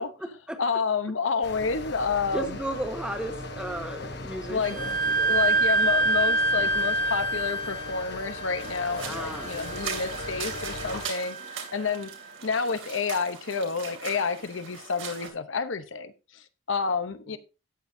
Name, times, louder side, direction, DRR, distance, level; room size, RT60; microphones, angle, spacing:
voice 1, 0.0-0.6 2.3-5.3 9.0-9.6 17.3-17.4, right 1 dB, 5° right, 1.3 m, -35 dB
voice 2, 0.6-2.6 4.5-5.0 5.2-12.1 12.4-17.4, left 5 dB, 70° left, 0.8 m, -29 dB
sound 1, 1.4-11.1, left 2 dB, 55° left, 1.1 m, -38 dB
Wind instrument woodwind instrument, 4.6-12.1, right 2 dB, 40° right, 0.7 m, -27 dB
sound 2, 8.6-15.3, right 6 dB, 75° right, 2.9 m, -39 dB
13.5 x 9.1 x 2.7 m
head